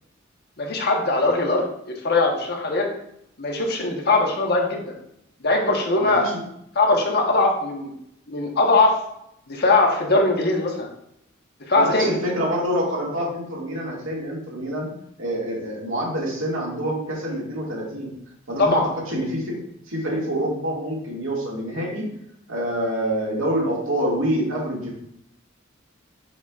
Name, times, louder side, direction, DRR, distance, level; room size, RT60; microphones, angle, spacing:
voice 1, 0.6-2.9 3.4-4.9 5.4-6.3 6.7-7.9 8.3-9.0 9.5-10.9 11.7-12.1 18.6-18.9, left 2 dB, 55° left, 1 dB, 1.2 m, -20 dB
voice 2, 6.0-6.4 11.8-14.9 15.2-18.1 18.5-19.6 19.9-22.1 22.5-24.9, right 1 dB, 90° right, -3 dB, 2.1 m, -26 dB
7.0 x 5.4 x 2.5 m, 0.74 s
head